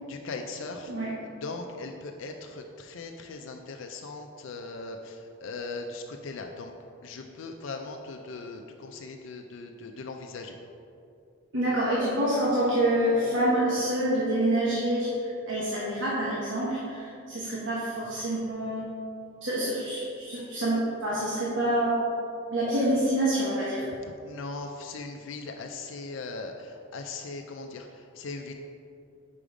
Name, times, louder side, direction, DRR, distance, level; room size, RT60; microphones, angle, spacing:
voice 1, 0.0-6.7 7.0-10.6 24.2-28.5, left 3 dB, 70° left, 3 dB, 0.4 m, -39 dB
voice 2, 11.5-18.9 19.4-22.0 22.5-23.9, right 1 dB, 65° right, -7 dB, 1.0 m, -27 dB
5.1 x 4.9 x 4.9 m, 2.6 s
head